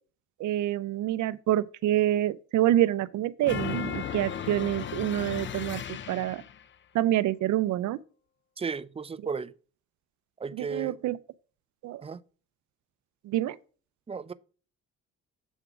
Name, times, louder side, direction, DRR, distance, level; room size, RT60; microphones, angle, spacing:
voice 1, 0.4-5.8 6.1-6.4 6.9-8.0 10.6-11.2 11.8-12.0 13.2-13.6, right 13 dB, 75° right, 0.5 m, -27 dB
sound 1, 3.4-6.6, left 8 dB, 40° left, 0.6 m, -35 dB
voice 2, 8.6-9.5 10.4-11.0 12.0-12.2 14.1-14.3, right 5 dB, 20° right, 0.4 m, -34 dB
8.0 x 3.6 x 5.9 m
cardioid pair, 90°, 30 cm